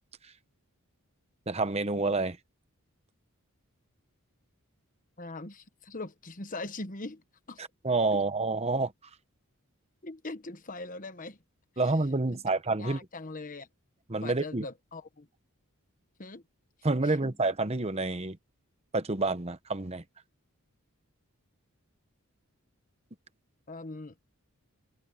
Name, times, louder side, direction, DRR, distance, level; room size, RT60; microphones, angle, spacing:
voice 1, 1.5-2.4 7.6-8.9 11.8-13.0 14.1-14.6 16.8-18.4 18.9-20.0, right 3 dB, 30° right, 1.0 m, -28 dB
voice 2, 5.2-7.6 8.1-8.2 10.0-11.4 11.8-11.9 12.3-12.4 12.8-13.7 14.2-15.3 16.2-16.4 17.0-17.3 23.7-24.1, left 2 dB, 35° left, 1.2 m, -41 dB
head